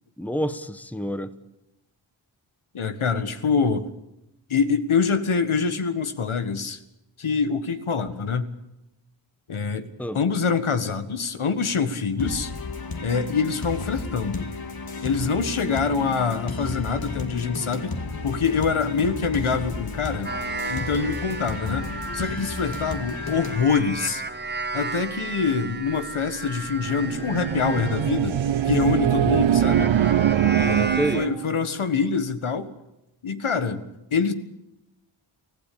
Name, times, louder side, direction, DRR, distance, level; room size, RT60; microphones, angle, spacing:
voice 1, 0.2-1.3 10.0-10.2 31.0-31.3, equal, 5° left, 12 dB, 1.2 m, -28 dB
voice 2, 2.7-3.9 4.5-6.8 7.2-8.5 9.5-12.5 13.0-14.5 15.0-18.0 18.2-20.3 20.7-24.2 24.7-28.4 28.6-30.0 30.5-32.7 33.2-33.8 34.1-34.3, left 5 dB, 75° left, 10 dB, 1.7 m, -25 dB
sound 1, 12.2-23.6, left 3 dB, 45° left, 2.1 m, -33 dB
sound 2, 20.2-31.3, right 3 dB, 20° right, 1.1 m, -34 dB
sound 3, 26.8-31.5, right 10 dB, 65° right, 0.7 m, -22 dB
24.5 x 15.5 x 8.6 m, 0.90 s
wide cardioid pair, 70°, 50 cm